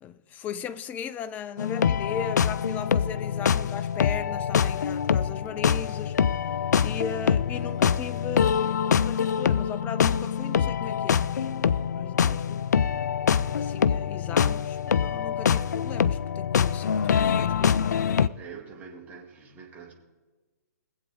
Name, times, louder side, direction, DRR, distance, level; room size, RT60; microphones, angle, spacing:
voice 1, 0.0-6.2 6.8-12.6 13.5-17.9, left 7 dB, 15° left, 0.4 m, -37 dB
sound 1, 1.6-18.3, left 7 dB, 75° left, 0.4 m, -25 dB
voice 2, 18.3-19.9, right 6 dB, 15° right, 2.3 m, -44 dB
22.5 x 7.9 x 3.9 m
hypercardioid pair, 140°, 9 cm